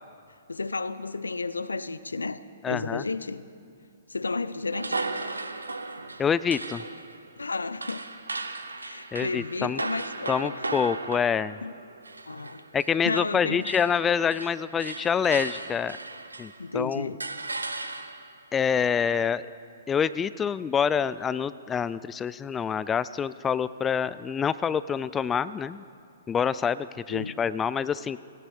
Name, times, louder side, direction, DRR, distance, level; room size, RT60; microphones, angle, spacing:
voice 1, 0.5-2.4 2.7-3.5 4.1-5.0 7.4-8.1 8.8-10.7 11.6-11.8 12.3-12.6 13.0-13.7 16.6-17.2 27.1-27.3, left 3 dB, 80° left, 15 dB, 0.6 m, -32 dB
voice 2, 2.6-3.0 6.2-6.8 9.1-9.8 10.3-11.6 12.7-16.0 16.4-17.1 18.5-19.4 19.9-25.8 26.3-28.2, left 7 dB, 15° left, 16 dB, 0.3 m, -26 dB
sound 1, 4.7-13.3 13.6-16.7 17.2-18.4, right 3 dB, 85° right, 0.9 m, -36 dB
18.5 x 16.0 x 4.2 m, 2.4 s
figure-of-eight pair, 115°, 0 cm